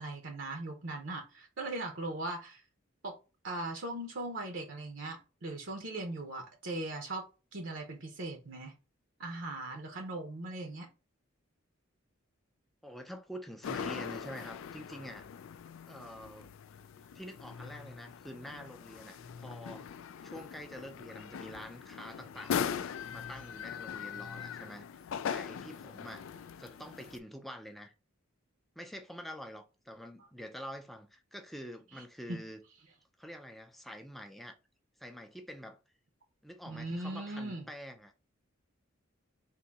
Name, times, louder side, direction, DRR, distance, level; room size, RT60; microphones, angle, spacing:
voice 1, 0.0-2.6 3.0-3.1 3.4-7.3 7.5-8.7 9.2-10.9 32.3-32.4 36.7-37.6, right 2 dB, 60° right, 0.8 m, -39 dB
voice 2, 12.8-15.3 15.9-16.5 17.1-25.0 25.3-26.3 26.6-27.9 28.8-32.6 33.2-34.6 35.0-35.8 36.4-38.1, equal, ahead, 0.4 m, -47 dB
sound 1, 13.6-27.2, left 7 dB, 70° left, 0.3 m, -41 dB
3.7 x 2.7 x 4.1 m
head